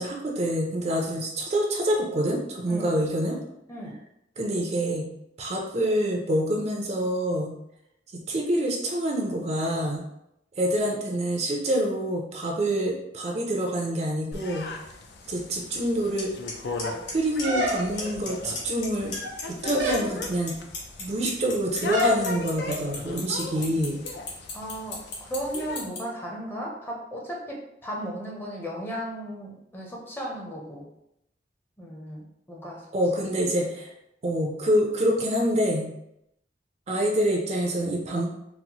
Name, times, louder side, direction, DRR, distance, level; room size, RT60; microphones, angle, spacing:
voice 1, 0.0-3.4 4.4-5.1 5.4-7.5 8.1-10.0 10.6-14.7 15.3-16.3 17.1-19.1 19.5-20.6 21.0-24.0 32.9-33.9 34.2-35.9 36.9-38.3, right 1 dB, 40° right, 0 dB, 0.5 m, -26 dB
voice 2, 3.7-4.0 24.5-30.9 31.8-32.9, equal, 10° left, -2 dB, 0.6 m, -35 dB
sound 1, 14.3-25.9, left 2 dB, 65° left, 0.4 m, -38 dB
Clock, 16.2-16.3 16.5-16.8 17.1-17.7 18.0-18.3 18.6-19.4 19.7-26.0, left 5 dB, 85° left, 0.9 m, -34 dB
sound 2, 17.4-18.2 19.0-19.4 19.8-20.1 21.9-22.2, equal, 70° right, 0.8 m, -26 dB
4.0 x 2.0 x 2.9 m, 0.80 s
head